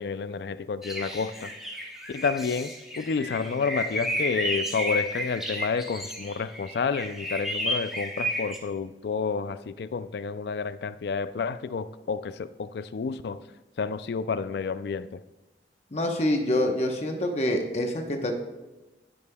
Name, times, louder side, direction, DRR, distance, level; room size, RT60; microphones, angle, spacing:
voice 1, 0.0-1.5 2.1-13.5 13.8-15.2, left 5 dB, 65° left, 14 dB, 0.3 m, -30 dB
sound 1, 0.8-8.6, equal, ahead, 0.9 m, -32 dB
voice 2, 15.9-18.3, left 1 dB, 35° left, 3 dB, 0.9 m, -26 dB
16.0 x 5.3 x 2.2 m, 1.0 s
head